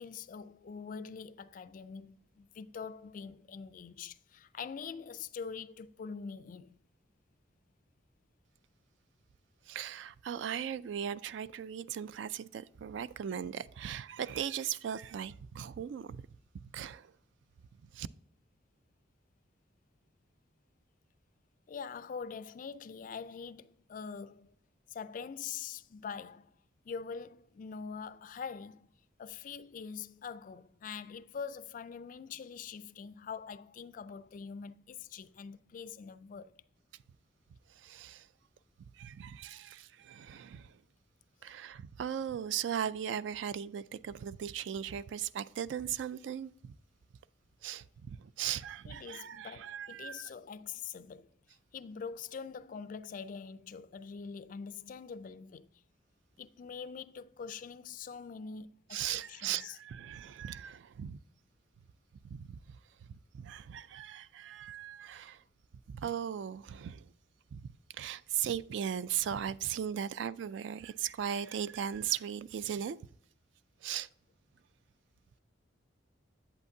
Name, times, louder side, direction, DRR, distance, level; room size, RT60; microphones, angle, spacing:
voice 1, 0.0-6.8 21.7-24.5 24.9-26.5 26.8-28.9 29.2-36.6 41.4-41.5 48.8-51.3 51.7-55.7 56.4-59.8, left 6 dB, 45° left, 0.3 m, -44 dB
voice 2, 9.7-16.2 16.5-17.1 17.9-18.1 37.8-38.3 39.0-40.8 41.4-46.7 47.6-50.2 58.9-61.2 62.3-62.8 63.1-65.4 65.9-67.1 67.5-67.7 67.9-73.0 73.8-74.1, right 9 dB, 70° right, 0.3 m, -38 dB
8.2 x 8.1 x 2.7 m
head